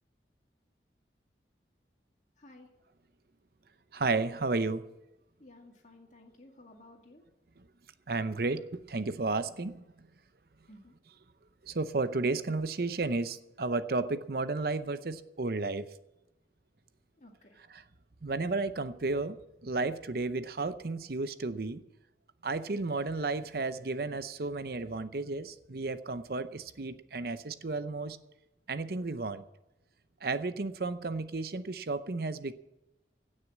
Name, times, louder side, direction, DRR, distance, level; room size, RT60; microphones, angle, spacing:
voice 1, 2.4-2.7 5.4-7.2 10.7-10.9 17.2-17.6, left 1 dB, 45° left, 1 dB, 2.1 m, -55 dB
voice 2, 3.9-4.8 8.1-9.8 11.6-15.8 17.7-17.8 18.2-19.4 19.6-21.8 22.4-28.2 28.7-29.4 30.2-32.6, right 3 dB, 60° right, 12 dB, 0.7 m, -33 dB
16.5 x 6.5 x 8.5 m, 0.93 s
head